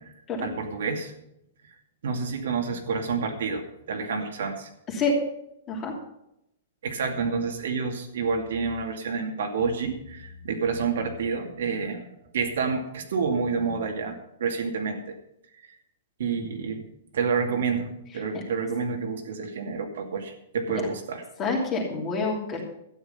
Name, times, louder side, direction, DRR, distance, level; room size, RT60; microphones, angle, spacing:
voice 1, 0.4-1.1 2.0-4.7 6.8-15.2 16.2-16.8 17.1-21.3, right 5 dB, 70° right, 3 dB, 2.4 m, -29 dB
voice 2, 21.4-22.6, left 3 dB, 20° left, 0 dB, 2.9 m, -27 dB
12.5 x 10.0 x 5.5 m, 0.80 s
hypercardioid pair, 175°, 0 cm